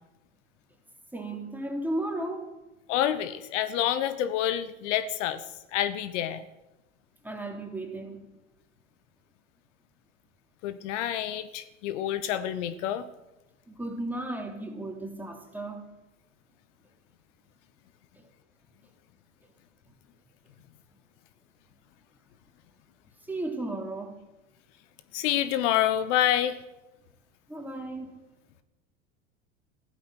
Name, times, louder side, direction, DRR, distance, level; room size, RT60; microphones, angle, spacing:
voice 1, 1.1-2.6 7.2-8.3 13.7-15.9 18.1-18.3 23.2-24.2 27.5-28.2, right 1 dB, 5° right, 3.3 m, -35 dB
voice 2, 2.9-5.4 5.7-6.4 10.6-13.1 25.1-26.6, left 11 dB, 65° left, 1.2 m, -27 dB
15.5 x 12.5 x 6.5 m
hypercardioid pair, 85°, 39 cm